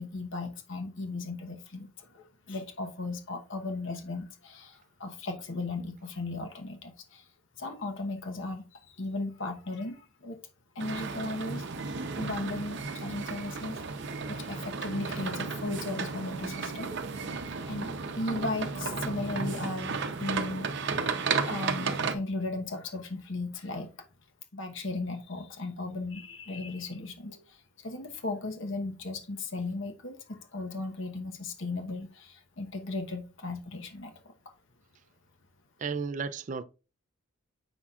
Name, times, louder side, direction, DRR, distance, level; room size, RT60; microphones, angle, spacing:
voice 1, 0.0-7.3 7.6-10.4 10.7-13.8 14.3-16.9 17.6-20.9 21.5-24.1 24.5-34.5, left 2 dB, 60° left, 1.0 m, -36 dB
sound 1, 10.8-22.1, right 4 dB, 55° right, 0.7 m, -34 dB
voice 2, 35.8-36.6, right 5 dB, 35° right, 0.3 m, -33 dB
7.1 x 5.7 x 2.4 m
head